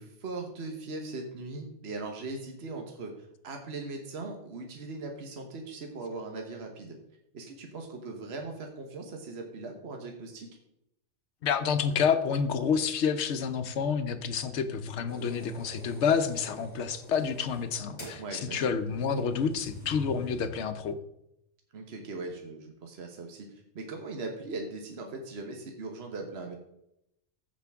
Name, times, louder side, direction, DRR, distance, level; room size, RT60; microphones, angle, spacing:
voice 1, 0.0-3.1 3.4-7.0 7.3-10.5 18.2-18.7 21.7-26.6, right 3 dB, 65° right, 3 dB, 1.4 m, -39 dB
voice 2, 11.4-21.0, left 6 dB, 75° left, 10 dB, 1.0 m, -29 dB
sound 1, 15.1-20.5, left 1 dB, 25° left, 2.4 m, -47 dB
14.0 x 5.2 x 3.5 m, 0.80 s
omnidirectional pair, 1.2 m